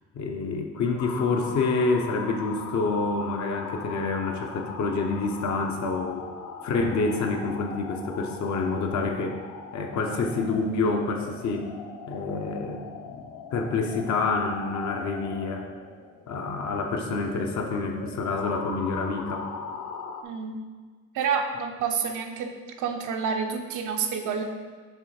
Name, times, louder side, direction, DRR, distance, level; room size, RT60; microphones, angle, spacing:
voice 1, 0.1-6.3 6.6-9.4 9.7-11.7 12.1-12.8 13.1-15.7 16.3-19.5, left 3 dB, 65° left, 2 dB, 0.9 m, -27 dB
sound 1, 1.0-20.2, left 6 dB, 85° left, 0.7 m, -40 dB
voice 2, 20.2-20.6 21.1-24.4, right 6 dB, 90° right, 4 dB, 0.8 m, -29 dB
6.7 x 3.4 x 4.9 m, 1.5 s
cardioid pair, 90°, 30 cm